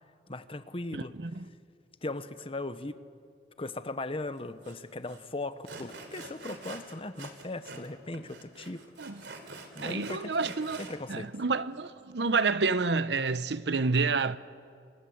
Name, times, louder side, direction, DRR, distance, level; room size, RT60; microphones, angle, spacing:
voice 1, 0.3-1.1 2.0-3.0 3.6-8.8 9.7-10.5 10.8-11.3, left 2 dB, 30° left, 1.1 m, -38 dB
voice 2, 0.9-1.5 9.0-9.2 9.8-14.4, right 4 dB, 70° right, 0.8 m, -29 dB
Sawing, 4.6-4.7 5.1-5.2 5.7-7.9 8.1-11.0, right 3 dB, 90° right, 3.4 m, -45 dB
29.0 x 26.0 x 7.9 m
head